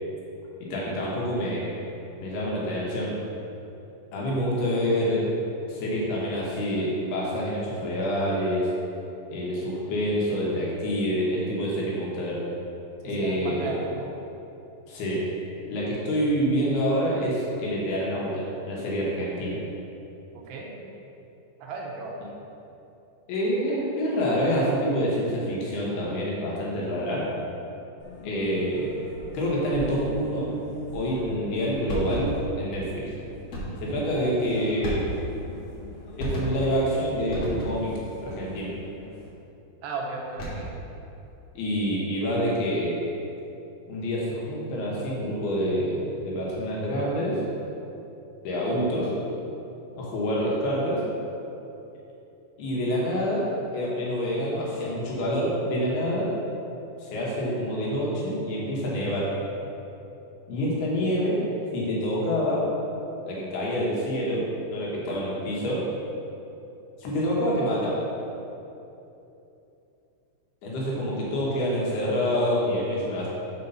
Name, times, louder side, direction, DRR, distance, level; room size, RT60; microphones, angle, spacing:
voice 1, 0.6-1.7 2.2-3.2 4.1-5.2 5.7-8.7 9.3-12.4 13.0-13.7 14.9-15.2 15.7-19.6 23.3-27.3 28.2-29.0 29.3-30.5 30.9-33.1 33.8-35.1 36.2-37.9 38.2-38.7 41.6-43.0 43.9-47.4 48.4-49.1 50.0-51.0 52.6-56.3 57.0-59.3 60.5-61.4 61.7-62.7 63.2-65.8 67.0-68.0 70.6-73.3, equal, 70° left, -5 dB, 3.0 m, -27 dB
voice 2, 13.0-14.1 20.3-20.8 21.6-22.2 34.1-34.7 39.8-40.7, right 3 dB, 80° right, -1 dB, 2.7 m, -35 dB
sound 1, 28.0-39.3, left 1 dB, 55° left, 2.6 m, -44 dB
sound 2, 31.9-32.5 33.5-33.9 34.8-35.4 36.2-36.8 37.3-38.0 40.2-40.8, right 1 dB, 85° left, 1.3 m, -32 dB
7.0 x 4.4 x 5.4 m, 2.9 s
omnidirectional pair, 5.0 m